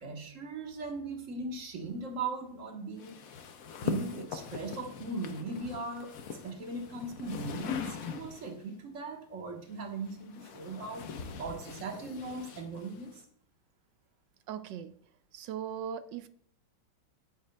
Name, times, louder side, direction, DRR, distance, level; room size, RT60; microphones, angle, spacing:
voice 1, 0.0-3.2 3.8-6.1 6.4-11.1 11.3-13.2, right 3 dB, 45° right, 3 dB, 1.5 m, -39 dB
sound 1, 3.0-8.6 9.7-13.2, left 6 dB, 60° left, 1.0 m, -41 dB
voice 2, 14.5-15.0 15.3-16.3, right 8 dB, 75° right, 12 dB, 1.2 m, -39 dB
10.0 x 9.3 x 2.3 m, 0.63 s
omnidirectional pair, 2.2 m